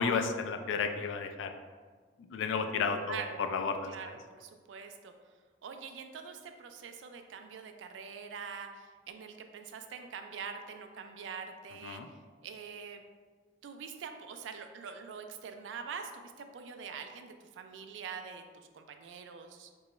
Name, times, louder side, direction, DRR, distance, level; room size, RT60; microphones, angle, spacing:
voice 1, 0.0-1.5 2.3-3.2 3.5-4.1 11.8-12.1, left 5 dB, 90° left, 6 dB, 0.3 m, -32 dB
voice 2, 3.1-3.4 3.9-5.1 5.6-12.0 12.4-13.0 13.6-19.7, right 6 dB, 80° right, 6 dB, 0.3 m, -44 dB
2.9 x 2.3 x 4.0 m, 1.5 s
head